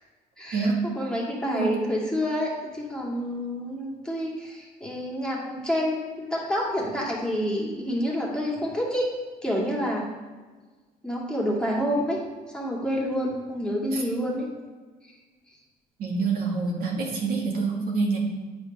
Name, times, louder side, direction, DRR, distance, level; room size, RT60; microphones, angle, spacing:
voice 1, 0.4-0.7 1.0-9.1 9.4-10.1 11.0-12.2 12.5-14.5 15.1-15.2, equal, 5° left, -4 dB, 2.1 m, -28 dB
voice 2, 16.0-18.2, right 4 dB, 60° right, -2 dB, 2.0 m, -26 dB
9.1 x 5.1 x 5.2 m, 1.4 s
cardioid pair, 110°, 17 cm